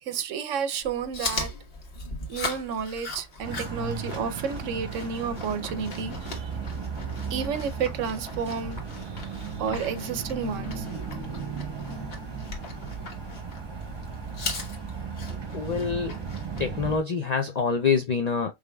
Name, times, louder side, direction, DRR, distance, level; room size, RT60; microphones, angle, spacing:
voice 1, 0.0-1.5 2.3-6.5 7.3-10.9, right 6 dB, 80° right, 1.0 m, -31 dB
Chewing mastication, 0.8-16.7, left 2 dB, 50° left, 1.3 m, -39 dB
sound 1, 3.4-17.0, right 5 dB, 25° right, 0.8 m, -36 dB
voice 2, 15.5-16.2 16.6-18.5, left 5 dB, 70° left, 0.4 m, -26 dB
5.0 x 3.3 x 2.2 m
omnidirectional pair, 1.3 m